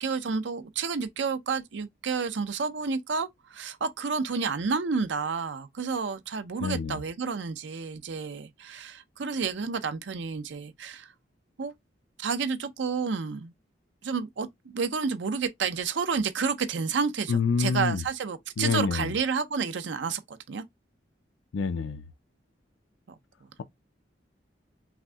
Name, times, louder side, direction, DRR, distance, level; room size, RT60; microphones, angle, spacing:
voice 1, 0.0-11.1 11.6-11.7 12.2-13.5 14.0-20.6, right 5 dB, 75° right, 0.6 m, -30 dB
voice 2, 6.6-7.0 17.3-18.0 18.6-19.1 21.5-22.0, left 5 dB, 90° left, 0.4 m, -27 dB
5.8 x 2.6 x 2.2 m
head